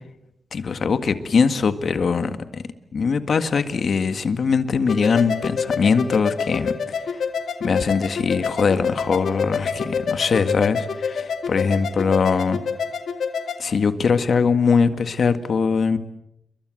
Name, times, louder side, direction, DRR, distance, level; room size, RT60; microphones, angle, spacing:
voice 1, 0.5-2.6 2.9-6.7 7.6-12.6 13.6-16.0, left 5 dB, 60° left, 10 dB, 1.8 m, -21 dB
sound 1, 4.9-13.6, left 6 dB, 80° left, 2.2 m, -27 dB
30.0 x 23.0 x 7.8 m, 0.85 s
wide cardioid pair, 115°, 0 cm